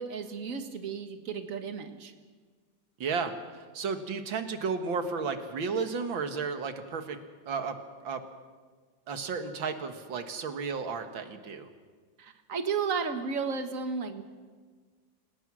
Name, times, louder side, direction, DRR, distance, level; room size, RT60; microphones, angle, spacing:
voice 1, 0.0-2.1 12.2-14.2, right 5 dB, 45° right, 7 dB, 1.8 m, -33 dB
voice 2, 3.0-7.2 7.5-8.2 9.1-11.7, right 5 dB, 90° right, 8 dB, 2.3 m, -33 dB
28.0 x 17.5 x 6.2 m, 1.5 s
omnidirectional pair, 2.1 m